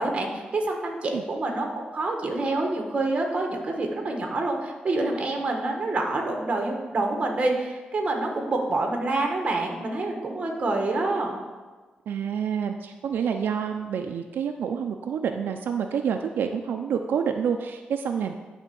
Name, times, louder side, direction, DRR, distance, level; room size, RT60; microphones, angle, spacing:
voice 1, 0.0-1.7 1.9-11.4, right 2 dB, 35° right, 2 dB, 1.4 m, -27 dB
voice 2, 12.1-18.3, right 7 dB, 85° right, 5 dB, 0.5 m, -28 dB
10.5 x 3.6 x 6.9 m, 1.3 s
wide cardioid pair, 145°, 3 cm